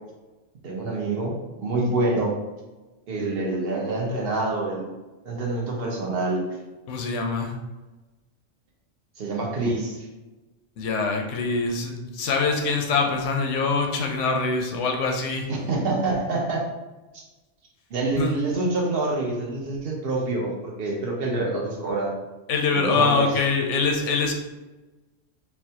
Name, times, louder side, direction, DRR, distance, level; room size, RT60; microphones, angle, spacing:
voice 1, 0.6-2.4 3.1-4.9 5.2-6.4 9.2-10.1 15.5-16.7 17.9-22.1 22.7-23.3, right 2 dB, 55° right, -2 dB, 0.9 m, -26 dB
voice 2, 6.9-7.5 10.8-15.5 18.2-18.3 22.5-24.3, left 4 dB, 80° left, 3 dB, 0.9 m, -24 dB
4.2 x 2.2 x 2.8 m, 1.1 s
omnidirectional pair, 1.2 m